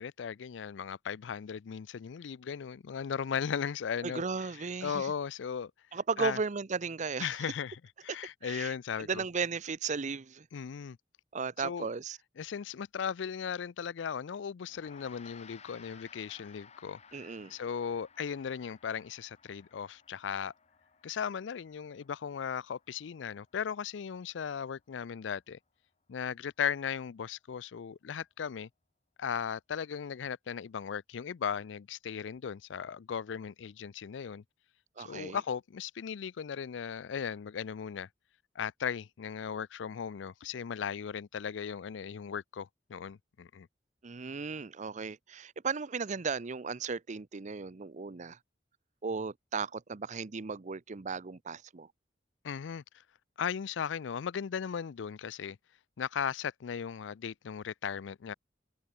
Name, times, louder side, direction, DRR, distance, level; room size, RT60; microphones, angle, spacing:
voice 1, 0.0-4.2 4.8-5.7 6.2-6.4 7.2-9.2 10.5-11.0 11.6-11.9 12.4-20.5 21.0-25.6 26.1-28.7 29.2-34.4 35.0-38.1 38.6-43.7 52.4-53.0 53.4-55.6 56.0-58.3, left 7 dB, 85° left, 0.4 m, -37 dB
voice 2, 4.0-5.1 5.9-7.3 8.1-8.2 8.4-10.5 11.3-12.2 17.1-17.5 35.0-35.4 44.0-48.4 49.0-51.9, right 5 dB, 40° right, 0.6 m, -36 dB
Gong, 14.7-24.3, left 6 dB, 40° left, 2.0 m, -58 dB
head